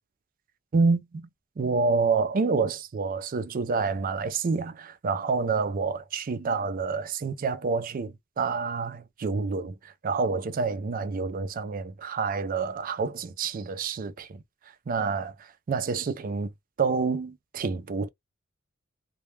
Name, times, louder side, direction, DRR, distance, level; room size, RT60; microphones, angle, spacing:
voice 1, 0.7-1.3 1.6-14.4 14.9-15.3 15.7-16.5 16.8-18.1, right 4 dB, 45° right, 0.4 m, -28 dB
2.2 x 2.1 x 3.1 m
head